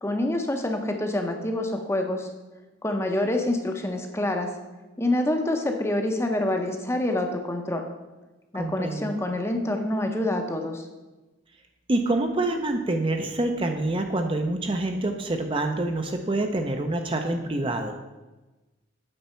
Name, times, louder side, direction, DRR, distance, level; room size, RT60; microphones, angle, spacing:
voice 1, 0.0-2.3 2.8-4.5 5.0-7.8 8.5-10.9, left 1 dB, 15° left, 4 dB, 0.7 m, -26 dB
voice 2, 8.5-9.1 11.9-17.9, right 2 dB, 25° right, 4 dB, 0.5 m, -26 dB
8.8 x 4.1 x 5.5 m, 1.1 s
head